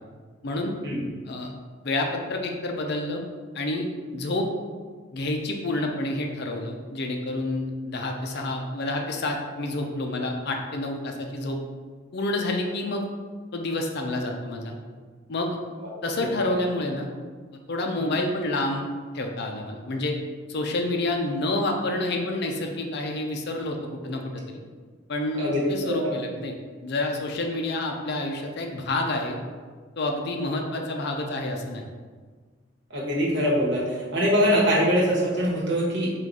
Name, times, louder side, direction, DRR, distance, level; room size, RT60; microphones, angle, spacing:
voice 1, 0.4-0.7 1.3-1.5 1.8-3.2 3.5-3.9 4.1-4.5 5.1-11.6 12.1-13.1 13.5-14.8 15.3-15.6 16.0-17.1 17.7-18.9 19.1-20.1 20.5-24.6 25.1-26.6 26.8-29.4 30.0-31.8, left 2 dB, 55° left, 2 dB, 0.5 m, -28 dB
voice 2, 25.4-26.1 32.9-36.1, equal, 60° right, -4 dB, 1.2 m, -23 dB
3.9 x 2.4 x 4.6 m, 1.5 s
head